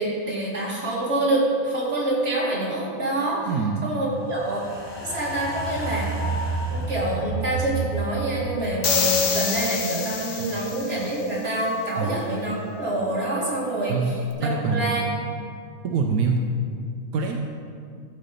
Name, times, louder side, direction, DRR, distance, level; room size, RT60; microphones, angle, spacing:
voice 1, 0.0-3.5 3.8-4.6 5.0-6.1 6.7-15.0, right 1 dB, 45° right, -6 dB, 2.8 m, -26 dB
voice 2, 3.5-3.9 10.4-10.7 12.0-12.2 13.9-14.2 14.4-15.2 15.8-16.4 17.1-17.4, right 5 dB, 90° right, 2 dB, 1.3 m, -25 dB
sound 1, 4.3-10.7 11.0-11.1, right 3 dB, 20° left, 1.5 m, -31 dB
sound 2, 8.8-11.1, left 5 dB, 60° left, 1.1 m, -26 dB
13.0 x 4.9 x 6.7 m, 2.2 s
omnidirectional pair, 1.5 m